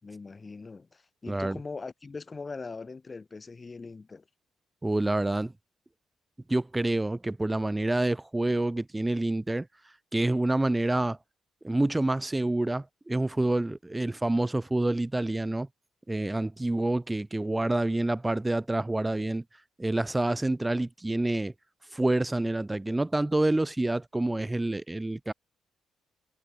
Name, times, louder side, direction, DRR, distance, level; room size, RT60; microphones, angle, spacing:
voice 1, 0.0-4.2, left 4 dB, 25° left, 4.0 m, -41 dB
voice 2, 1.3-1.6 4.8-5.5 6.5-9.7 10.1-11.2 11.6-15.7 16.1-19.4 19.8-21.5 21.9-25.3, right 2 dB, 10° right, 3.2 m, -27 dB
cardioid pair, 130°, 0 cm